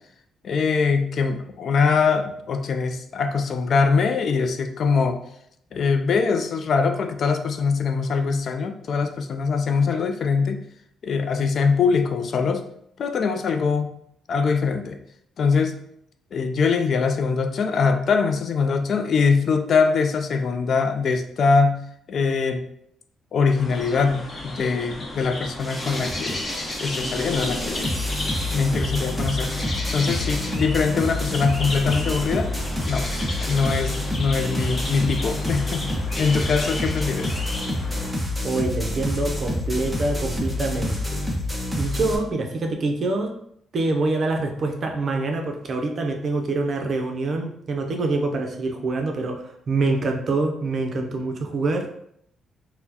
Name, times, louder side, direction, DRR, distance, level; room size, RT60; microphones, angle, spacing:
voice 1, 0.4-5.2 5.7-10.6 11.0-12.6 13.0-13.9 14.3-15.0 15.4-15.7 16.3-21.8 22.1-22.6 23.3-26.4 26.8-27.9 28.5-29.5 29.9-32.5 32.9-33.1 33.4-35.9 36.2-37.3, left 5 dB, 55° left, 7 dB, 0.4 m, -22 dB
sound 1, 23.6-38.1, left 1 dB, 35° left, 0.8 m, -33 dB
sound 2, 25.6-42.2, left 1 dB, ahead, 0.7 m, -28 dB
voice 2, 38.4-41.0 41.8-43.3 43.7-51.9, right 3 dB, 50° right, 3 dB, 0.5 m, -25 dB
4.2 x 2.1 x 2.8 m, 0.72 s
cardioid pair, 90°, 0 cm